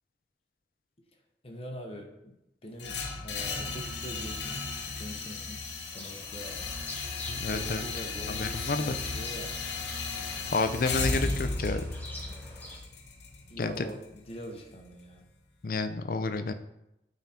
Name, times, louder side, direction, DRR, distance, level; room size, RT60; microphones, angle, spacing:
voice 1, 1.4-2.3 2.6-4.6 4.9-7.1 7.4-9.6 13.5-15.3, equal, 35° left, 2 dB, 1.0 m, -43 dB
sound 1, 2.8-14.8, left 3 dB, 85° left, 1.0 m, -35 dB
sound 2, 5.9-12.8, left 1 dB, 10° left, 1.2 m, -47 dB
voice 2, 7.3-7.8 8.3-8.9 10.5-11.8 13.6-13.9 15.6-16.5, left 3 dB, 50° left, 10 dB, 0.5 m, -30 dB
8.9 x 3.8 x 4.3 m, 0.87 s
head